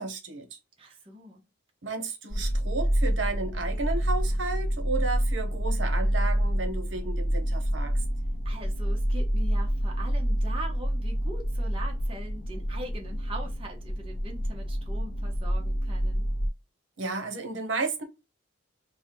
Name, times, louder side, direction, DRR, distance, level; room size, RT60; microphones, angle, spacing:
voice 1, 0.0-0.6 1.8-7.9 17.0-18.0, right 3 dB, 65° right, 0.9 m, -33 dB
voice 2, 0.8-1.4 8.4-16.3, right 1 dB, 25° right, 0.7 m, -42 dB
sound 1, 2.3-16.5, equal, 45° left, 0.8 m, -28 dB
3.4 x 2.1 x 4.3 m
head